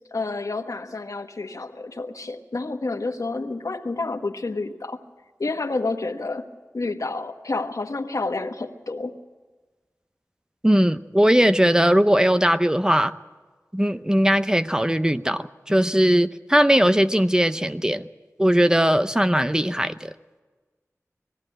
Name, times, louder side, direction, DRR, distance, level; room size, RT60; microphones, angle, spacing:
voice 1, 0.1-5.0 5.4-6.5 6.7-9.1, left 3 dB, 80° left, 6 dB, 1.3 m, -29 dB
voice 2, 10.6-13.1 13.7-18.1 18.4-20.1, equal, 10° right, 11 dB, 0.6 m, -19 dB
20.5 x 15.0 x 8.9 m, 1.3 s
wide cardioid pair, 55°, 6 cm